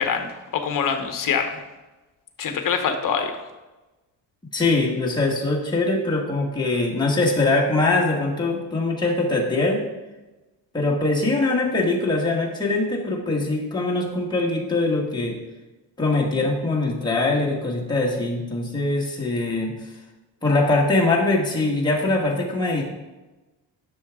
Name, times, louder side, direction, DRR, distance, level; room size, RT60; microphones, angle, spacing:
voice 1, 0.0-1.5 2.4-3.3, left 6 dB, 50° left, 6 dB, 1.0 m, -24 dB
voice 2, 4.5-9.8 10.7-15.3 16.0-19.7 20.4-22.8, left 2 dB, 10° left, -3 dB, 1.4 m, -22 dB
11.5 x 6.4 x 3.6 m, 1.1 s
cardioid pair, 170°, 42 cm